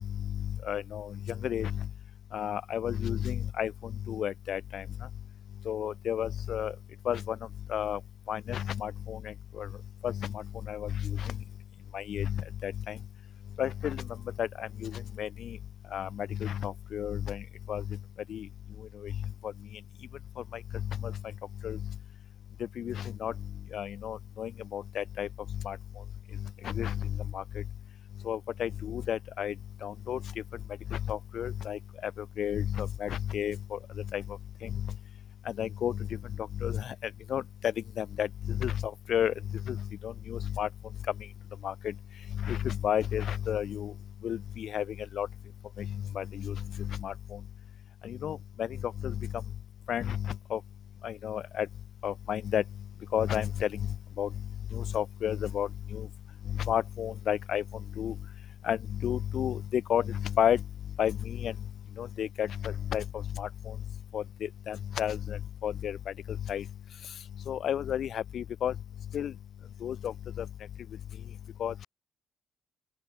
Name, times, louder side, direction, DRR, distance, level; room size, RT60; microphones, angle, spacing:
voice 1, 0.1-1.9 2.3-4.8 5.6-6.7 7.0-7.4 7.7-8.0 8.3-9.7 10.0-11.4 11.9-13.0 13.6-14.0 14.4-15.6 15.9-18.0 18.3-18.5 18.9-19.1 19.4-19.5 20.5-21.2 21.6-21.8 22.8-23.3 23.7-25.3 25.6-25.8 26.6-27.6 28.2-29.5 29.8-30.2 30.9-33.8 34.1-34.9 35.4-40.7 41.6-41.9 42.3-43.9 44.2-45.3 45.8-47.4 48.0-49.3 49.9-50.6 51.0-51.7 52.0-52.6 53.1-54.3 54.7-56.1 56.5-58.1 58.6-60.6 61.0-61.5 62.0-63.7 64.1-66.6 67.5-68.7 69.1-69.3 69.8-70.5 71.6-71.9, left 9 dB, 65° left, 1.5 m, -32 dB
open air
cardioid pair, 90°, 0 cm